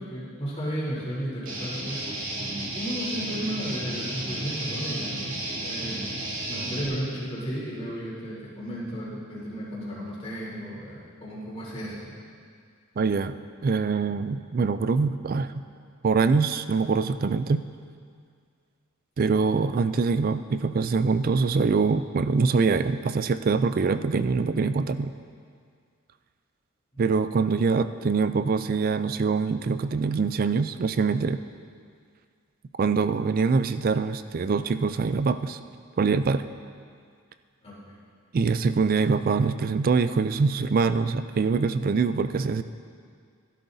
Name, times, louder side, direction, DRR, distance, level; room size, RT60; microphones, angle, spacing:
voice 1, 0.0-2.0 2.7-6.1 6.5-12.2 26.9-27.0 37.6-38.0, equal, 30° left, -8 dB, 3.4 m, -34 dB
Guitar, 1.5-6.9, right 1 dB, 65° right, 2.6 m, -32 dB
voice 2, 13.0-13.4 13.6-15.6 16.0-17.6 19.2-25.1 27.0-31.4 32.8-35.6 36.0-36.5 38.3-42.6, right 4 dB, 40° right, 11 dB, 0.3 m, -24 dB
15.5 x 11.5 x 2.7 m, 2.1 s
head